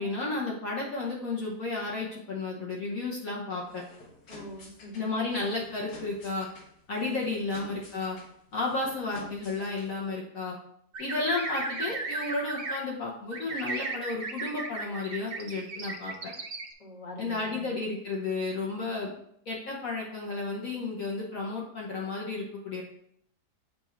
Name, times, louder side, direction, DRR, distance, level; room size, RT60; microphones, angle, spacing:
voice 1, 0.0-3.8 4.9-6.5 6.9-8.2 8.5-10.6 11.0-16.3 17.2-19.1 19.5-22.8, left 3 dB, 60° left, -3 dB, 1.4 m, -32 dB
sound 1, 3.5-10.1, left 3 dB, 80° left, 1.9 m, -51 dB
voice 2, 4.3-5.1 9.0-9.4 16.8-17.7, equal, 25° left, -2 dB, 1.5 m, -44 dB
sound 2, 10.9-12.8 13.3-16.7, right 3 dB, 50° right, 0.5 m, -35 dB
7.2 x 2.6 x 5.7 m, 0.71 s
omnidirectional pair, 1.8 m